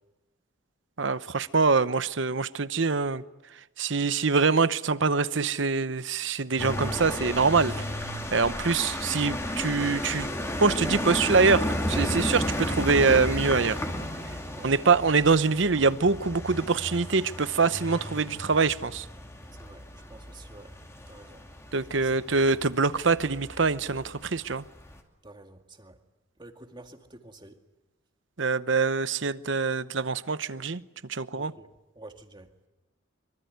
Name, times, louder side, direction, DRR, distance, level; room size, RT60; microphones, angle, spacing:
voice 1, 1.0-3.2 3.8-10.3 10.6-13.8 14.6-19.1 21.7-24.6 28.4-30.8 31.1-31.5, right 4 dB, 70° right, 0.9 m, -24 dB
sound 1, 6.6-25.0, left 1 dB, 15° left, 2.7 m, -33 dB
voice 2, 20.1-20.7 21.1-21.4 22.0-22.1 25.2-26.0 26.4-27.6 31.3-31.7 32.0-32.5, right 2 dB, 25° right, 2.1 m, -49 dB
24.5 x 24.5 x 9.5 m
head